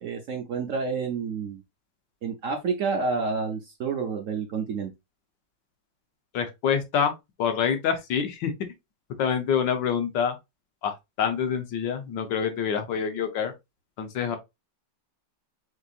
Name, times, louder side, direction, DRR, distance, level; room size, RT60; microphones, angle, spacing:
voice 1, 0.0-1.6 2.2-4.9, right 5 dB, 60° right, 0.9 m, -29 dB
voice 2, 6.3-7.1 7.4-8.5 9.2-10.4 10.8-13.5 14.0-14.4, left 7 dB, 80° left, 1.6 m, -26 dB
6.4 x 2.9 x 2.4 m
omnidirectional pair, 2.0 m